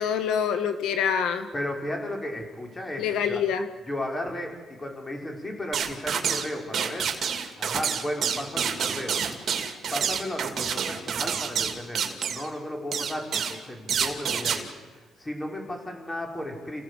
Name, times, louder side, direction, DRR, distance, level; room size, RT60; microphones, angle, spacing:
voice 1, 0.0-1.5 3.0-3.7, left 7 dB, 85° left, 9 dB, 1.9 m, -26 dB
voice 2, 1.5-3.4 3.9-7.1 7.6-9.2 9.9-14.7 14.9-16.8, left 1 dB, 20° left, 2 dB, 5.3 m, -34 dB
sound 1, 5.7-6.5 6.7-12.5 12.9-13.6 13.9-14.6, right 7 dB, 55° right, 2.6 m, -28 dB
28.0 x 16.0 x 8.4 m, 1.3 s
cardioid pair, 90°, 0 cm